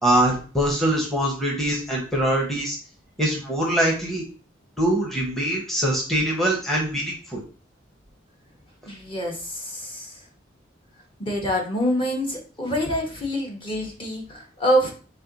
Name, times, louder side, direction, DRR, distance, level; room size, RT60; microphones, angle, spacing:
voice 1, 0.0-2.8 3.2-4.2 4.8-7.4, right 1 dB, ahead, -2 dB, 0.7 m, -23 dB
voice 2, 8.9-10.1 11.2-14.9, equal, 30° left, 0 dB, 0.9 m, -26 dB
4.2 x 2.2 x 3.8 m, 0.39 s
head